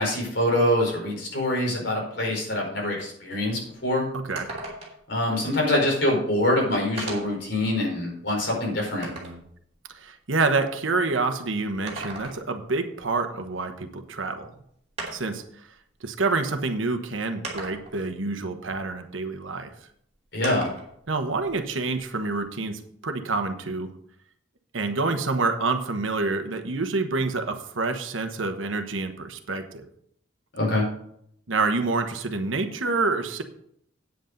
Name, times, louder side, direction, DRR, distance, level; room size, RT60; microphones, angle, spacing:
voice 1, 0.0-4.1 5.1-9.1 20.3-20.7 30.6-30.8, left 1 dB, 65° left, -2 dB, 4.8 m, -24 dB
sound 1, 3.8-3.9 4.4-5.1 6.2-6.3 7.0-7.4 8.0-9.4 11.7-12.6 14.1-14.2 15.0-15.4 16.4-16.5 17.4-18.1 20.4-20.9 21.3-22.4, right 2 dB, 30° right, 2.9 m, -37 dB
voice 2, 4.1-4.5 9.0-9.4 9.9-14.5 15.1-15.7 16.0-19.7 21.1-23.9 24.7-29.9 31.5-33.4, right 3 dB, 85° right, 7 dB, 1.2 m, -27 dB
9.2 x 8.1 x 5.3 m, 0.69 s
head